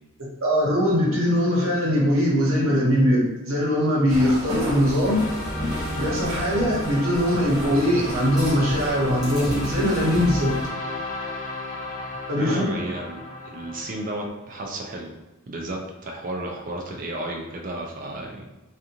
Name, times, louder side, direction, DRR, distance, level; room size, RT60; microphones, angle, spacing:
voice 1, 0.4-5.2 6.0-10.5 12.3-12.6, equal, 75° right, -4 dB, 0.9 m, -21 dB
sound 1, 4.1-10.7, equal, 20° right, 0.9 m, -33 dB
sound 2, 5.0-14.3, left 1 dB, 40° left, 0.5 m, -33 dB
voice 2, 12.4-13.2 13.5-15.1 15.5-18.5, right 1 dB, 40° right, 1 dB, 0.4 m, -32 dB
2.5 x 2.4 x 2.8 m, 1.1 s
head